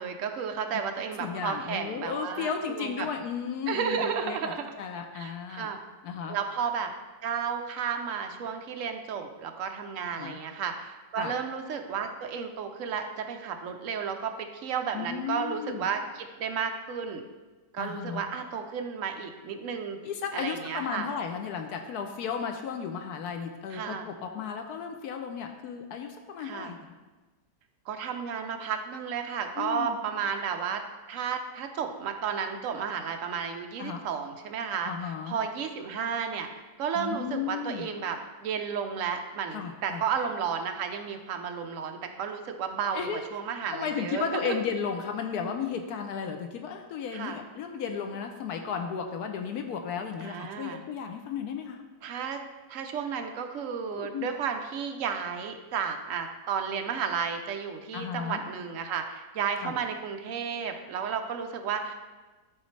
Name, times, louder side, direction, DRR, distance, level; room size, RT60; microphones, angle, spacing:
voice 1, 0.0-3.1 3.7-4.7 5.1-5.8 6.3-6.9 7.2-17.2 17.7-20.0 20.3-21.1 23.7-24.1 26.4-26.7 27.9-30.8 31.1-36.5 36.8-44.6 47.1-47.4 50.2-50.8 52.0-52.4 52.7-61.9, right 7 dB, 65° right, 5 dB, 0.8 m, -33 dB
voice 2, 1.2-5.7 6.0-6.4 10.2-10.4 11.2-11.3 14.9-15.9 17.8-18.2 20.0-26.9 29.6-30.0 33.8-34.0 34.8-35.4 37.0-37.9 39.5-40.0 42.9-43.2 43.7-51.8 53.9-54.3 57.9-58.4 59.6-59.8, left 7 dB, 70° left, 5 dB, 1.0 m, -34 dB
12.0 x 4.1 x 3.2 m, 1.2 s
omnidirectional pair, 1.8 m